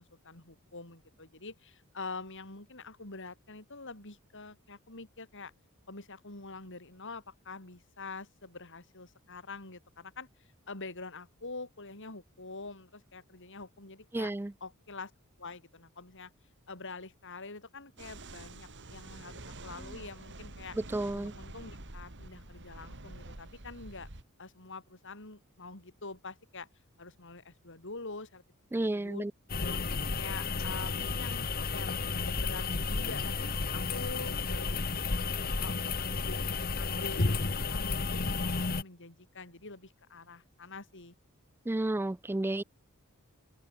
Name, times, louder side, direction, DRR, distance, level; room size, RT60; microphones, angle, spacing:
voice 1, 0.0-5.5 5.9-10.3 10.7-14.3 14.6-15.1 15.4-16.3 16.7-20.8 21.1-24.1 24.4-26.7 27.0-28.4 28.7-29.2 29.7-29.8 30.2-36.4 36.8-41.1, left 3 dB, 60° left, 5.5 m, -46 dB
voice 2, 14.1-14.5 19.9-20.0 20.9-21.3 28.7-29.3 41.7-42.6, right 2 dB, 10° right, 0.3 m, -31 dB
sound 1, 18.0-24.2, right 2 dB, 55° right, 3.4 m, -47 dB
sound 2, 29.5-38.8, left 4 dB, 45° left, 1.3 m, -32 dB
open air
head